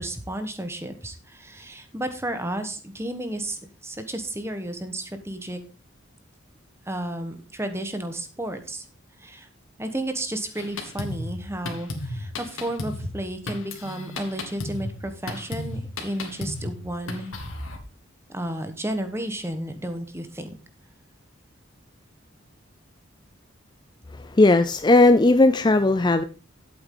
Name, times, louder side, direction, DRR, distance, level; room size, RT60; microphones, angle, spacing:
voice 1, 0.0-5.6 6.9-8.8 9.2-9.5 9.8-17.4 18.3-20.6, right 1 dB, 15° right, 8 dB, 1.3 m, -32 dB
Drum kit, 10.5-17.8, left 1 dB, 80° left, 2.4 m, -34 dB
voice 2, 24.1-26.2, left 2 dB, 20° left, 10 dB, 0.4 m, -17 dB
11.5 x 8.1 x 3.9 m, 0.34 s
head